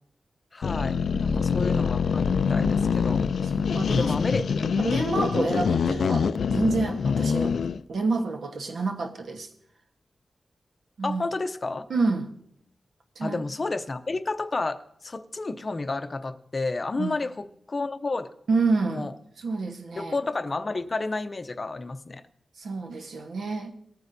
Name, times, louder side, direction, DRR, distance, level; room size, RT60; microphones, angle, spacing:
voice 1, 0.5-1.0 1.2-3.2 4.0-4.4 11.0-11.8 13.2-18.3 18.9-19.1 20.0-22.2, left 3 dB, 30° left, 9 dB, 0.6 m, -31 dB
sound 1, 0.6-7.8, left 6 dB, 80° left, 0.3 m, -25 dB
voice 2, 1.1-1.6 3.4-4.2 4.6-7.6 7.9-9.5 11.0-11.2 11.9-12.3 13.2-13.4 17.0-17.1 18.5-19.1 19.4-20.2 22.6-23.7, right 3 dB, 75° right, 4 dB, 1.1 m, -29 dB
19.0 x 9.5 x 2.6 m, 0.70 s
wide cardioid pair, 145°, 0 cm